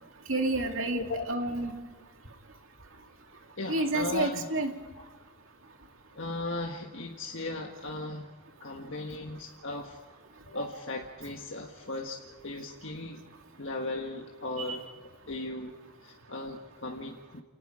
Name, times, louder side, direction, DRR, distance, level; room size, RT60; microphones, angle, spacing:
voice 1, 0.3-1.7 3.7-4.7 14.6-14.8, right 2 dB, 75° right, 3 dB, 2.5 m, -29 dB
voice 2, 0.9-1.3 3.6-4.5 6.1-8.2 8.6-10.0 10.5-12.2 12.4-13.2 13.6-14.9 15.3-15.7 16.0-17.4, left 2 dB, 65° left, 0 dB, 1.6 m, -37 dB
29.5 x 19.0 x 5.0 m, 1.3 s
head